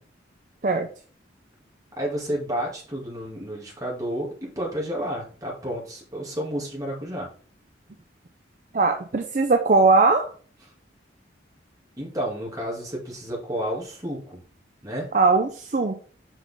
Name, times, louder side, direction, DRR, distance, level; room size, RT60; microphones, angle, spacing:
voice 1, 2.0-7.3 12.0-14.4 14.8-15.1, equal, 20° right, -3 dB, 2.3 m, -31 dB
voice 2, 8.7-10.3 15.1-16.0, right 3 dB, 40° right, 5 dB, 0.5 m, -20 dB
6.1 x 5.5 x 3.6 m, 0.43 s
head